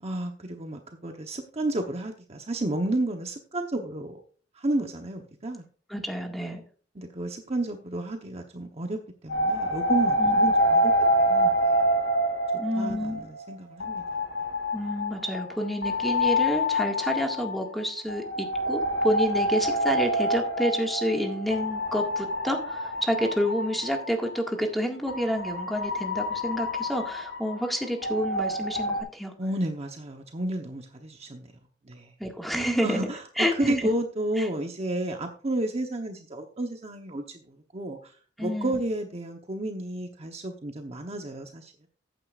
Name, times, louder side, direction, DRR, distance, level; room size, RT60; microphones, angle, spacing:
voice 1, 0.0-4.2 4.6-5.6 7.0-10.9 11.2-11.9 12.8-14.0 29.4-31.5 31.8-32.1 32.8-33.2 33.5-38.0 38.4-41.9, right 1 dB, 35° right, 4 dB, 0.9 m, -31 dB
voice 2, 5.9-6.6 10.2-10.4 12.6-13.2 14.7-29.3 32.2-33.0 33.4-33.9 34.4-34.5 38.4-38.8, equal, ahead, 2 dB, 1.9 m, -29 dB
sound 1, 9.3-13.4 13.8-24.4 25.1-29.0, equal, 80° left, 3.0 m, -27 dB
14.5 x 9.2 x 2.5 m, 0.41 s
head